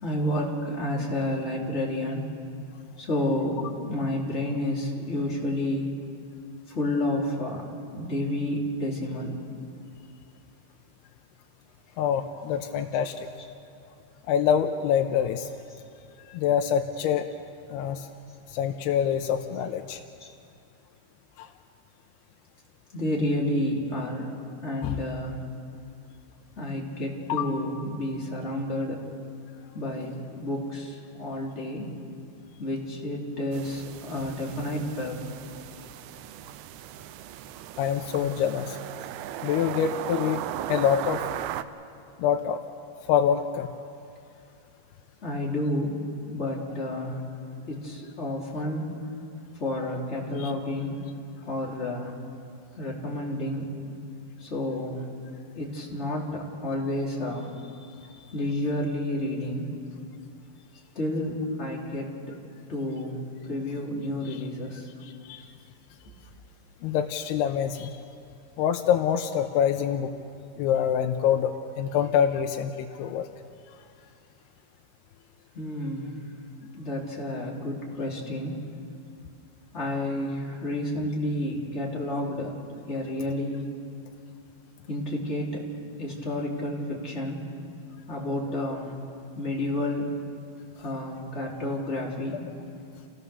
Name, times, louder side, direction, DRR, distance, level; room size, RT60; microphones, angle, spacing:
voice 1, 0.0-2.2 3.0-5.9 6.7-9.4 20.2-20.3 22.9-24.3 24.6-25.4 26.6-29.0 29.7-31.9 32.6-35.2 45.2-46.0 46.3-47.2 47.7-48.9 49.6-50.9 51.4-52.1 52.8-53.7 54.4-55.0 55.5-57.5 58.0-59.7 60.9-62.1 62.7-63.2 63.4-64.9 75.5-76.1 76.7-78.6 79.7-82.5 82.9-83.6 84.9-85.6 86.0-87.5 88.1-88.9 89.3-90.1 90.8-92.4, left 1 dB, 20° left, -3 dB, 2.8 m, -30 dB
voice 2, 12.0-13.3 14.3-15.5 16.3-17.3 17.7-18.1 18.5-20.0 21.4-21.5 24.8-25.1 27.3-27.5 37.8-38.8 39.4-41.2 42.2-42.6 43.0-43.7 50.4-50.5 64.3-64.4 65.0-65.5 66.8-68.0 68.6-70.1 70.6-73.3, left 8 dB, 85° left, 5 dB, 2.7 m, -26 dB
sound 1, 33.5-41.6, right 12 dB, 80° right, 2.6 m, -37 dB
28.5 x 16.5 x 6.8 m, 2.5 s
omnidirectional pair, 4.6 m